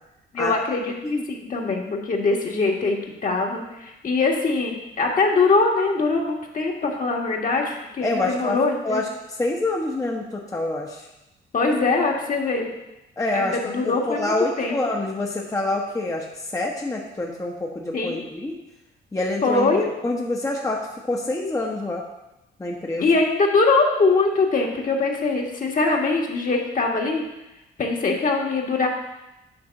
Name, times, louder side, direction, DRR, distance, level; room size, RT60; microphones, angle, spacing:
voice 1, 0.3-9.0 11.5-12.7 13.3-14.8 17.9-18.2 19.4-19.9 23.0-27.2 27.8-28.9, left 3 dB, 45° left, 0 dB, 1.5 m, -22 dB
voice 2, 8.0-8.6 8.8-11.1 13.2-18.6 19.1-19.7 20.0-20.8 21.1-22.0 22.6-23.0, left 2 dB, 15° left, -1 dB, 0.9 m, -26 dB
8.7 x 3.5 x 6.4 m, 0.93 s
cardioid pair, 90°, 20 cm